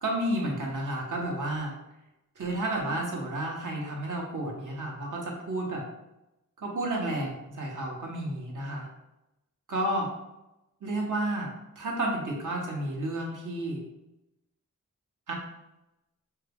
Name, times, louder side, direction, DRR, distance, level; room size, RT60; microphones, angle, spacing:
voice 1, 0.0-1.7 2.4-5.8 6.6-8.9 9.7-10.1 10.8-13.8 15.3-15.4, right 1 dB, 70° right, -1 dB, 1.1 m, -31 dB
5.5 x 2.3 x 3.4 m, 0.91 s
wide cardioid pair, 110°, 32 cm